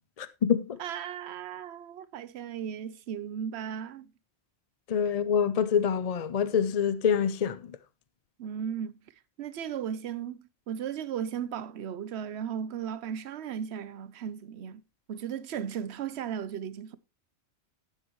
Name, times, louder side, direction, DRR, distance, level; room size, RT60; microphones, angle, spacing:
voice 1, 0.2-0.8 4.9-7.6, left 7 dB, 45° left, 0.5 m, -26 dB
voice 2, 0.8-4.1 8.4-9.0 9.4-14.8 15.1-17.0, right 8 dB, 75° right, 0.9 m, -36 dB
11.0 x 9.5 x 3.0 m
omnidirectional pair, 1.1 m